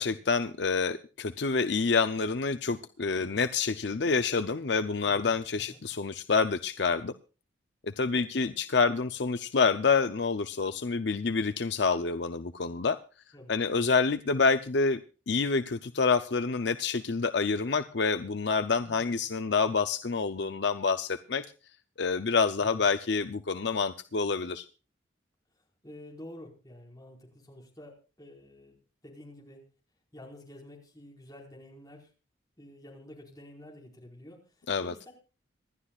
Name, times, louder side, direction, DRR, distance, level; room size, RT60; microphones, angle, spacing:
voice 1, 0.0-7.1 8.0-13.0 13.5-15.0 15.3-21.5 22.0-24.7 34.7-34.9, left 4 dB, 65° left, 11 dB, 0.6 m, -27 dB
voice 2, 5.1-5.4 5.7-5.8 8.1-8.5 13.3-13.5 18.8-19.2 22.6-22.9 25.8-28.8 29.0-29.6 30.1-32.1 32.6-34.4 34.8-35.1, left 1 dB, 20° left, -1 dB, 4.8 m, -49 dB
26.5 x 11.5 x 2.4 m, 0.35 s
head